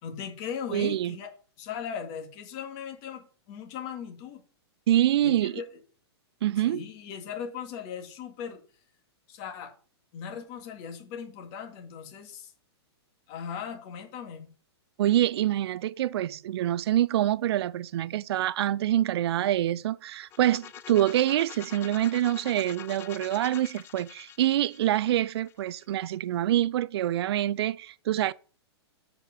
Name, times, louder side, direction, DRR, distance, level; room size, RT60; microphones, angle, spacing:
voice 1, 0.0-1.3 1.6-4.4 5.2-5.7 6.6-8.6 9.3-9.7 10.1-12.5 13.3-14.5, left 7 dB, 35° left, 2.1 m, -38 dB
voice 2, 0.7-1.2 4.9-5.6 6.4-6.8 15.0-28.3, right 12 dB, 70° right, 0.4 m, -26 dB
sound 1, 20.2-26.0, left 10 dB, 15° left, 0.5 m, -45 dB
8.0 x 5.1 x 5.8 m
hypercardioid pair, 155°, 14 cm